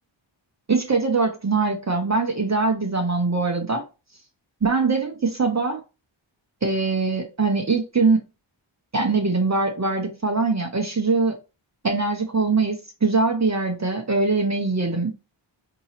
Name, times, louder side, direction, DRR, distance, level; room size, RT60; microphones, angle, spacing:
voice 1, 0.7-3.9 4.6-5.8 6.6-8.2 8.9-11.4 11.8-15.1, right 3 dB, 35° right, 0.9 m, -22 dB
4.5 x 2.9 x 2.9 m
wide cardioid pair, 95°, 48 cm